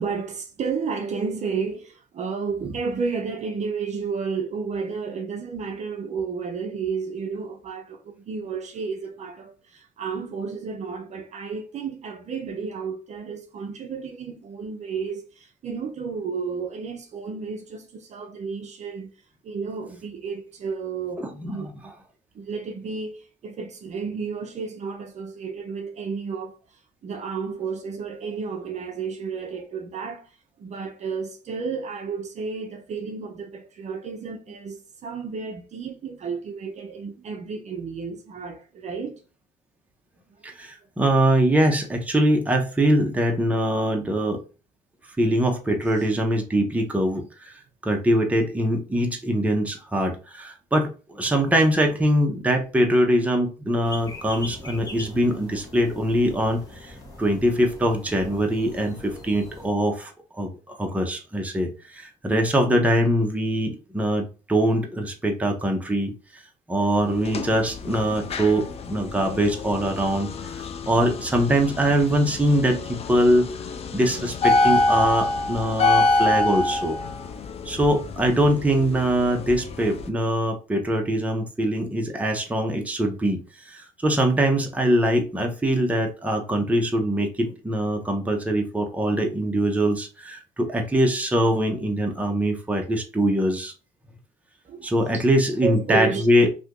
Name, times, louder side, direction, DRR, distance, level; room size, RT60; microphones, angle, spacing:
voice 1, 0.0-19.1 19.4-21.9 22.3-39.2 45.9-46.1 94.6-95.2 95.6-96.5, right 5 dB, 45° right, 0.5 m, -32 dB
voice 2, 21.2-21.7 40.4-44.4 45.2-47.5 47.8-56.9 57.2-60.1 60.4-66.1 66.7-70.3 70.9-73.5 73.9-77.0 77.6-83.4 83.6-93.7 94.8-96.5, right 1 dB, 10° right, 0.7 m, -23 dB
sound 1, 53.8-59.7, left 1 dB, 20° left, 1.3 m, -41 dB
sound 2, 67.0-80.1, left 2 dB, 35° left, 0.4 m, -26 dB
2.8 x 2.5 x 3.6 m
cardioid pair, 110°, 17 cm